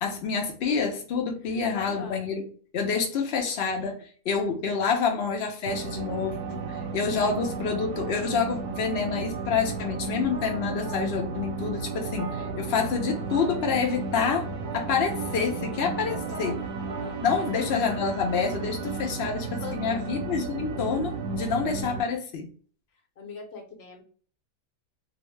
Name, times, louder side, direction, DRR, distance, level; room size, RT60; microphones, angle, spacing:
voice 1, 0.0-2.4 2.7-14.5 14.7-16.6 17.2-22.5, left 5 dB, 75° left, 2 dB, 0.5 m, -28 dB
voice 2, 1.4-2.2 12.8-12.9 16.1-16.5 17.0-17.7 19.6-20.1 23.2-24.0, left 5 dB, 50° left, 1 dB, 0.9 m, -41 dB
sound 1, 5.7-22.0, right 4 dB, 75° right, 1.0 m, -34 dB
sound 2, 10.3-11.1 12.0-14.0 14.2-14.4 14.6-17.1, right 1 dB, 30° right, 0.7 m, -41 dB
2.7 x 2.1 x 3.0 m, 0.43 s
omnidirectional pair, 1.7 m